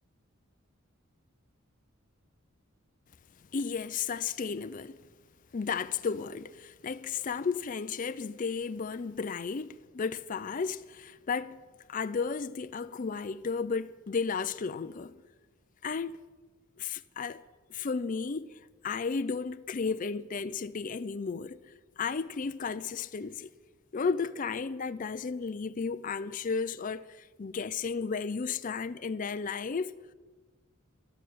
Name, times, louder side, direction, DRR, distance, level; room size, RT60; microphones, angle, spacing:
voice 1, 3.5-5.1 5.5-11.6 11.9-15.2 15.8-16.2 16.8-17.4 17.7-21.6 22.0-23.5 23.9-29.9, left 5 dB, 40° left, 0.4 m, -33 dB
13.0 x 11.5 x 9.2 m
head